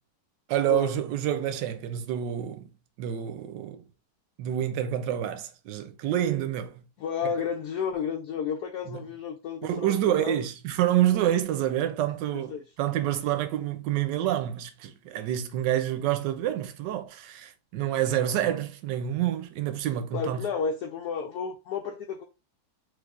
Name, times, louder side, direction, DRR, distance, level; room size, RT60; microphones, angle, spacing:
voice 1, 0.5-2.7 3.0-3.8 4.4-6.8 7.2-7.3 8.9-9.0 9.6-20.4, right 11 dB, 80° right, 1.2 m, -28 dB
voice 2, 7.0-10.4 12.3-12.6 18.2-18.3 20.1-22.2, left 6 dB, 70° left, 1.0 m, -32 dB
3.3 x 3.3 x 2.4 m
omnidirectional pair, 1.9 m